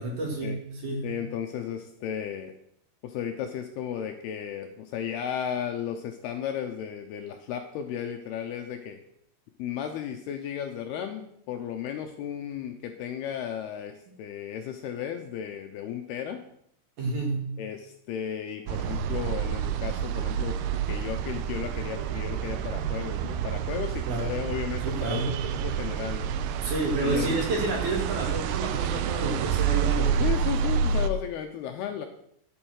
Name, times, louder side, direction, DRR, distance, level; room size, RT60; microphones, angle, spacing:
voice 1, 0.0-1.1 17.0-17.5 24.1-24.3 24.8-25.3 26.6-30.3, right 2 dB, 50° right, 0 dB, 3.2 m, -30 dB
voice 2, 1.0-2.5 3.0-9.0 9.6-16.4 17.6-26.3 27.0-27.4 30.2-32.1, left 9 dB, 75° left, 5 dB, 2.5 m, -34 dB
sound 1, 18.7-31.1, right 8 dB, 80° right, 2.6 m, -29 dB
12.5 x 8.0 x 6.4 m, 0.72 s
omnidirectional pair, 5.2 m